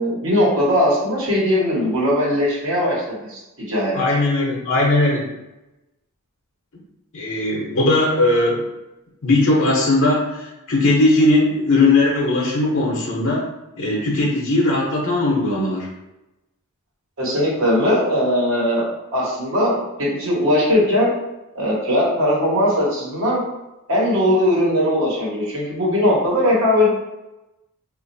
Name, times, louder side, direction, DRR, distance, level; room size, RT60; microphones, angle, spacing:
voice 1, 0.0-4.0 17.2-18.8 19.1-21.1 21.5-23.4 23.9-26.9, left 1 dB, 60° right, -5 dB, 1.2 m, -19 dB
voice 2, 3.9-5.3 7.1-8.6 9.2-13.5 13.8-15.9, left 2 dB, 60° left, -3 dB, 0.8 m, -18 dB
4.2 x 2.5 x 2.6 m, 0.96 s
head